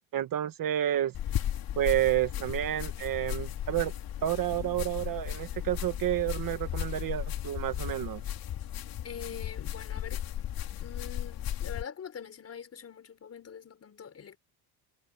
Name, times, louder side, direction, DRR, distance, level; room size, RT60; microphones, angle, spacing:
voice 1, 0.1-1.1 1.7-3.9 4.2-8.2, right 12 dB, 45° right, 1.6 m, -30 dB
sound 1, 1.1-11.8, left 11 dB, 50° left, 3.5 m, -35 dB
voice 2, 9.0-10.2 10.8-14.4, left 7 dB, 30° left, 5.9 m, -44 dB
cardioid pair, 135°, 46 cm